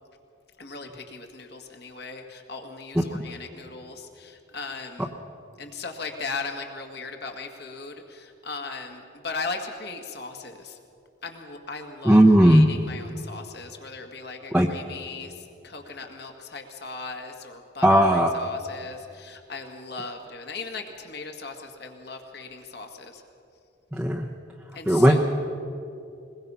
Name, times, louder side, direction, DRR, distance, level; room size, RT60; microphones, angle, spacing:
voice 1, 0.6-5.1 5.6-10.8 11.2-23.2 24.7-25.2, left 4 dB, 55° left, 3 dB, 2.0 m, -38 dB
voice 2, 12.1-12.6 14.5-14.7 17.8-18.3 23.9-24.3 24.9-25.2, right 1 dB, 5° right, -2 dB, 0.9 m, -16 dB
21.5 x 21.5 x 5.7 m, 2.6 s
head